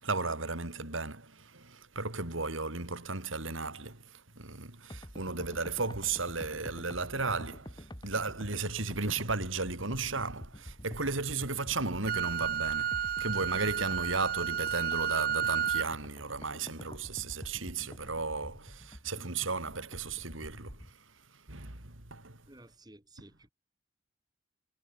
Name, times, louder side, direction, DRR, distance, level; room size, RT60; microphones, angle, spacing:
voice 1, 0.0-22.5, right 3 dB, 75° right, 3.7 m, -35 dB
sound 1, 4.9-20.9, equal, 20° left, 5.7 m, -48 dB
Wind instrument woodwind instrument, 12.0-15.9, right 9 dB, 50° right, 1.2 m, -31 dB
voice 2, 22.5-23.5, right 1 dB, 20° right, 3.2 m, -55 dB
head